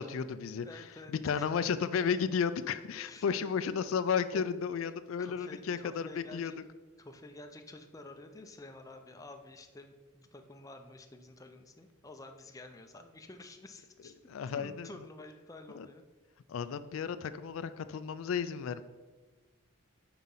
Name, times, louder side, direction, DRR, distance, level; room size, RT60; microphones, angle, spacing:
voice 1, 0.0-0.8 1.1-6.5 14.3-14.9 15.8-15.9 16.5-18.8, left 6 dB, 75° left, 12 dB, 0.3 m, -33 dB
voice 2, 0.6-1.5 3.0-3.2 4.3-4.6 5.2-6.6 7.0-14.1 14.5-16.0, left 2 dB, 15° left, 5 dB, 0.5 m, -50 dB
5.7 x 4.9 x 5.5 m, 1.3 s
head